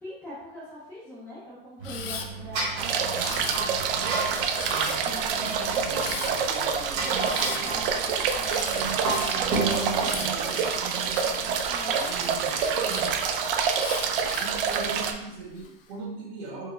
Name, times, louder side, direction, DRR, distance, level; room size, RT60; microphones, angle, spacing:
voice 1, 0.0-13.2, equal, 5° left, -10 dB, 0.4 m, -44 dB
Camera, 1.8-2.3 3.2-3.9 4.5-5.1 6.0-6.3 7.2-7.6 8.4-11.4 11.9-13.0 13.8-14.6 15.2-15.7, left 6 dB, 70° left, 0.5 m, -38 dB
sound 1, 1.8-10.2, right 3 dB, 35° right, 1.2 m, -33 dB
sound 2, 2.8-15.1, right 6 dB, 65° right, 0.5 m, -27 dB
voice 2, 14.4-16.7, right 3 dB, 50° right, -4 dB, 1.5 m, -38 dB
4.5 x 2.0 x 3.2 m, 0.88 s
supercardioid pair, 175°, 29 cm